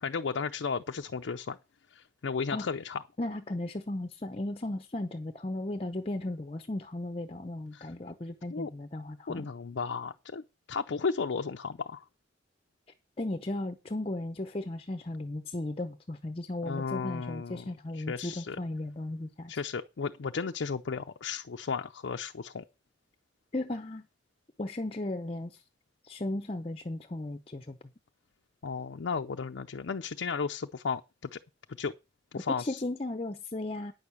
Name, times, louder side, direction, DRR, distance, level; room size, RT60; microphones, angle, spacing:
voice 1, 0.0-1.6 1.9-3.0 7.7-7.9 8.5-8.7 9.3-12.0 16.6-17.7 18.0-18.6 19.5-22.6 28.6-31.4 31.8-31.9 32.3-32.8, left 5 dB, 75° left, 0.5 m, -34 dB
voice 2, 3.2-9.5 13.2-19.5 23.5-24.1 24.6-25.6 26.0-27.8 32.5-33.9, left 1 dB, 30° left, 0.7 m, -36 dB
9.5 x 6.3 x 6.9 m
head